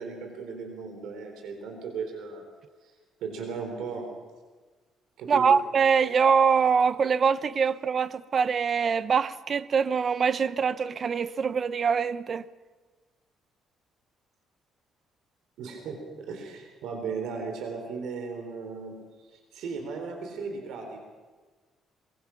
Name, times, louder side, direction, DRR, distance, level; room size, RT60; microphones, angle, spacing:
voice 1, 0.0-2.4 3.2-4.0 5.2-5.5 15.6-19.0 19.3-21.0, right 5 dB, 75° right, 3.9 m, -36 dB
voice 2, 5.3-12.4, right 6 dB, 35° right, 0.7 m, -24 dB
23.5 x 22.5 x 5.9 m
cardioid pair, 160°, 0 cm